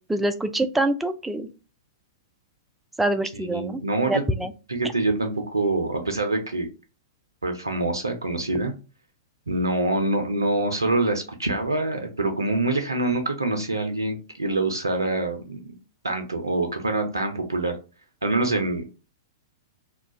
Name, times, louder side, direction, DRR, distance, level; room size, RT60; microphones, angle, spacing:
voice 1, 0.1-1.5 3.0-3.8 4.1-4.5, right 1 dB, 5° right, 9 dB, 0.3 m, -25 dB
voice 2, 3.3-4.2 4.7-6.7 7.4-8.7 9.5-15.7 16.0-17.7 18.2-18.9, right 2 dB, 85° right, 5 dB, 0.5 m, -25 dB
2.3 x 2.1 x 3.9 m, 0.33 s
figure-of-eight pair, 105°, 2 cm